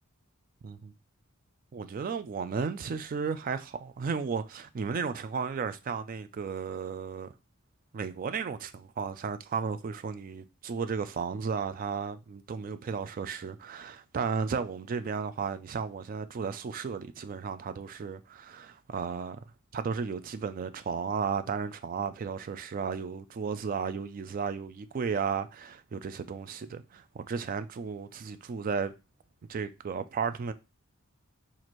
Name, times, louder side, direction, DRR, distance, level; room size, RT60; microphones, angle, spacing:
voice 1, 1.7-7.3 7.9-19.4 19.7-28.9 29.5-30.5, right 5 dB, 40° right, 0.3 m, -34 dB
4.2 x 2.5 x 3.0 m
head